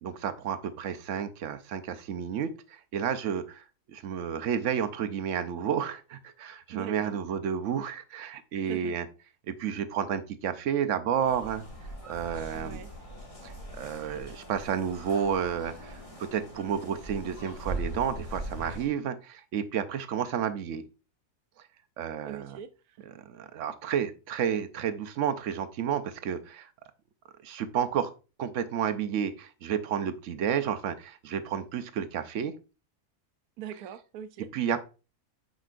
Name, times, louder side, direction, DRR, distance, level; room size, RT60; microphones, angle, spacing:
voice 1, 0.0-9.1 9.5-11.7 12.0-12.8 13.4-20.8 22.0-22.6 23.3-26.7 27.4-28.1 28.4-32.6 34.4-34.8, right 8 dB, 65° right, 0.8 m, -31 dB
voice 2, 6.7-7.2 8.5-9.0 12.5-12.9 22.3-23.1 33.6-34.5, right 9 dB, 85° right, 1.1 m, -42 dB
sound 1, 11.2-18.9, right 1 dB, 25° left, 1.5 m, -41 dB
7.7 x 5.3 x 2.4 m
omnidirectional pair, 1.6 m